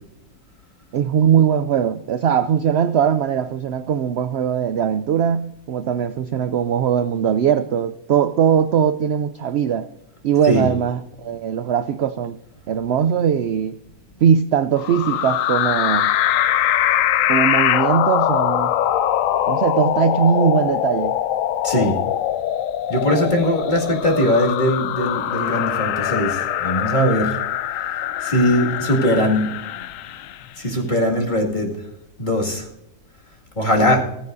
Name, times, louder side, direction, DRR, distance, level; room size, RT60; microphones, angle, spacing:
voice 1, 0.9-9.9 10.2-12.4 12.7-13.8 14.2-16.1 17.3-18.7 19.5-21.2 33.8-34.0, right 8 dB, 70° right, 0.6 m, -20 dB
sound 1, 14.8-30.5, left 11 dB, 70° left, 0.9 m, -22 dB
voice 2, 21.6-22.0 22.9-27.3 28.2-29.5 30.6-31.7 32.2-32.6 33.6-34.0, equal, 30° left, 2.3 m, -20 dB
15.0 x 14.5 x 2.6 m
omnidirectional pair, 1.6 m